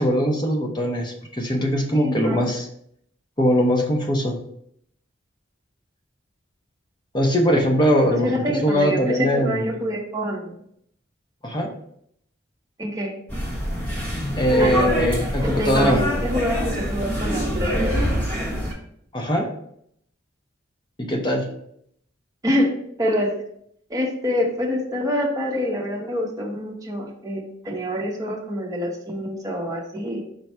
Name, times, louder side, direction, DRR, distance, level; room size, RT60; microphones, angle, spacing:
voice 1, 0.0-2.7 3.4-4.4 7.1-8.3 8.6-9.6 11.4-11.7 14.4-16.0 19.1-19.5 21.0-21.4, equal, 25° left, 0 dB, 0.6 m, -21 dB
voice 2, 1.9-2.4 8.1-10.5 12.8-13.1 14.6-15.0 15.4-18.0 22.4-23.3 23.9-30.2, equal, 20° right, -1 dB, 0.9 m, -26 dB
sound 1, 13.3-18.7, equal, 10° left, 1.1 m, -25 dB
5.3 x 2.3 x 4.2 m, 0.68 s
head